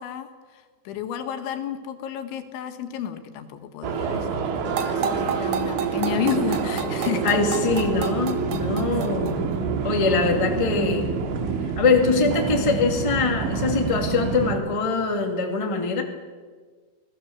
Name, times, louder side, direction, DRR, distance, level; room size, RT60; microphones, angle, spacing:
voice 1, 0.0-7.3 9.4-9.5, left 10 dB, 80° left, 7 dB, 3.9 m, -32 dB
sound 1, 3.8-14.6, right 5 dB, 85° right, 4.3 m, -27 dB
sound 2, 4.6-9.5, right 6 dB, 70° right, 1.8 m, -32 dB
voice 2, 7.2-9.4 9.8-11.1 11.8-16.0, left 4 dB, 40° left, 2 dB, 0.4 m, -23 dB
25.5 x 18.0 x 7.2 m, 1.5 s
omnidirectional pair, 5.3 m